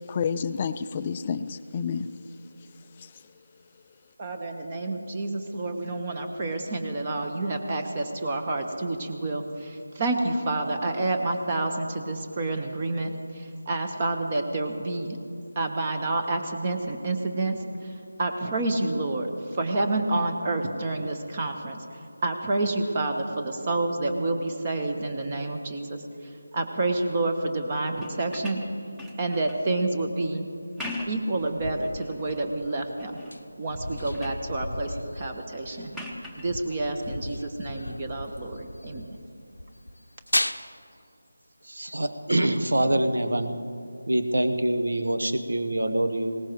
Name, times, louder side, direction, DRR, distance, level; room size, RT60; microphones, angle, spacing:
voice 1, 0.1-2.2 3.0-3.1, left 6 dB, 25° left, 12 dB, 0.4 m, -29 dB
voice 2, 4.2-15.2 15.5-21.8 22.2-28.6 29.2-30.4 31.1-33.2 33.6-36.0 36.4-39.2, right 2 dB, 30° right, 4 dB, 1.1 m, -29 dB
sound 1, 28.0-29.7 30.6-31.3 31.8-32.5 33.0-33.4 33.8-34.5 35.9-36.5 38.2-38.4, left 1 dB, 5° right, 0.9 m, -40 dB
sound 2, 31.4-39.2 39.5-40.5, left 1 dB, 85° left, 0.7 m, -35 dB
voice 3, 41.7-43.6 44.1-46.4, right 1 dB, 70° right, 8 dB, 1.3 m, -25 dB
20.5 x 18.5 x 3.1 m, 2.5 s
figure-of-eight pair, 165°, 0 cm